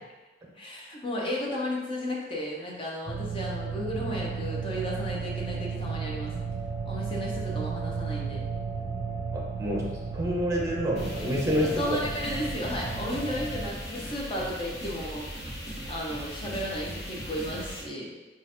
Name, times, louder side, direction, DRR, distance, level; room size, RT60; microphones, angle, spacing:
voice 1, 0.6-6.4 6.9-8.4 11.6-15.3 15.9-18.1, equal, 30° left, -3 dB, 0.8 m, -34 dB
sound 1, 3.1-13.7, right 5 dB, 50° right, 0.5 m, -34 dB
voice 2, 9.3-9.9 10.1-12.0, equal, 20° right, -2 dB, 0.7 m, -28 dB
sound 2, 11.0-17.8, equal, 60° left, 1.3 m, -38 dB
3.9 x 2.5 x 4.2 m, 1.2 s
head